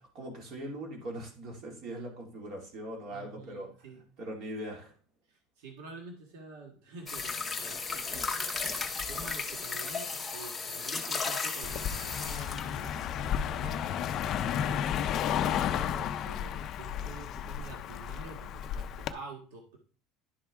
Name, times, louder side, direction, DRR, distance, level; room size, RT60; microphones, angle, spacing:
voice 1, 0.0-3.7 4.2-4.9, right 1 dB, 40° right, 1 dB, 2.3 m, -41 dB
voice 2, 3.1-4.0 5.3-8.8 9.1-13.9 14.3-19.8, right 4 dB, 75° right, 1 dB, 1.6 m, -48 dB
sound 1, 7.1-13.2 14.2-14.3, left 4 dB, 10° left, 0.8 m, -35 dB
Car passing by, 11.6-19.1, left 9 dB, 35° left, 0.4 m, -32 dB
11.0 x 4.6 x 3.5 m, 0.41 s
cardioid pair, 170°, 0 cm